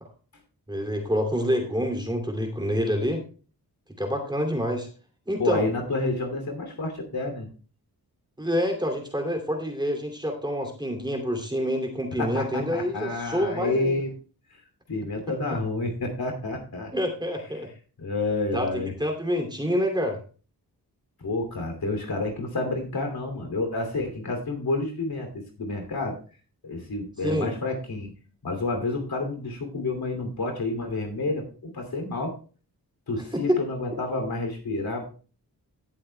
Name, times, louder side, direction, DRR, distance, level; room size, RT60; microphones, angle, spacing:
voice 1, 0.7-3.2 4.0-4.9 5.3-5.7 8.4-14.0 16.9-17.7 18.5-20.2 27.2-27.5 33.3-33.6, equal, 10° right, 3 dB, 2.6 m, -27 dB
voice 2, 5.4-7.5 12.2-14.1 14.5-14.6 14.9-16.9 18.0-18.9 21.2-26.2 26.6-28.1 28.4-32.3 33.1-35.0, left 2 dB, 65° left, 4 dB, 2.8 m, -29 dB
17.5 x 7.6 x 2.2 m, 0.38 s
cardioid pair, 55°, 39 cm